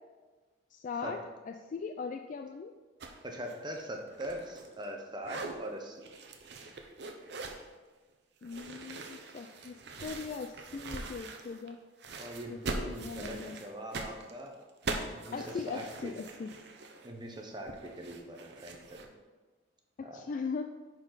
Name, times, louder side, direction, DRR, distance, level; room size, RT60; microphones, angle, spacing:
voice 1, 0.7-1.2 1.5-2.7 8.4-11.8 12.5-13.6 15.3-16.5 20.0-20.6, left 5 dB, 45° left, 6 dB, 0.3 m, -39 dB
sound 1, 3.0-3.2 3.5-4.9 5.2-5.6 6.0-7.7 8.4-11.7 12.0-19.1, right 3 dB, 60° right, 0.7 m, -42 dB
voice 2, 3.2-6.0 12.1-14.6 15.1-16.1 17.0-19.0 20.0-20.2, equal, 25° right, 2 dB, 0.9 m, -42 dB
10.0 x 4.4 x 4.0 m, 1.3 s
head